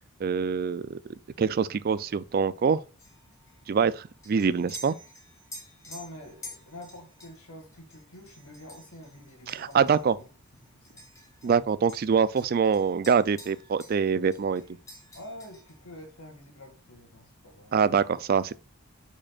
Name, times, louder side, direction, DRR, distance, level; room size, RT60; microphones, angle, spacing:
voice 1, 0.2-1.0 1.4-2.8 3.7-4.9 9.5-10.2 11.4-14.6 17.7-18.5, right 6 dB, 45° right, 0.3 m, -24 dB
sound 1, 3.0-11.6 11.9-14.1 14.3-15.8, left 1 dB, 15° left, 1.3 m, -49 dB
voice 2, 5.9-10.3 10.7-11.0 11.4-11.7 15.1-17.7, left 1 dB, 90° left, 1.9 m, -47 dB
8.6 x 5.0 x 2.4 m
head